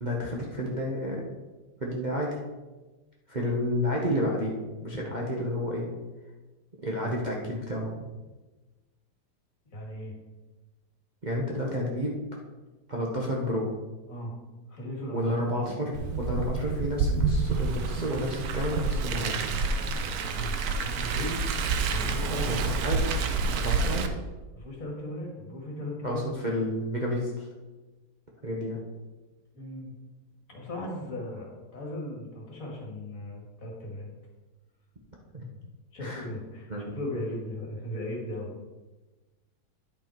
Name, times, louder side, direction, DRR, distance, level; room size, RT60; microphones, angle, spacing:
voice 1, 0.0-1.3 1.8-2.3 3.3-5.9 6.8-8.1 11.2-12.2 12.9-13.7 15.1-19.4 22.5-22.6 22.8-23.2 23.5-24.1 26.0-27.5 28.4-28.8 35.3-35.4 36.0-36.3 36.7-36.9, equal, 30° right, -3 dB, 1.0 m, -30 dB
voice 2, 9.7-10.1 14.1-14.3 14.7-15.3 20.3-20.5 20.8-21.4 21.9-22.8 24.5-26.3 29.5-29.9 30.5-34.1 35.9-38.5, left 1 dB, 50° left, -1 dB, 2.1 m, -37 dB
Car, 15.9-24.1, right 4 dB, 65° right, 1.1 m, -28 dB
10.0 x 5.5 x 4.5 m, 1.2 s
omnidirectional pair, 1.9 m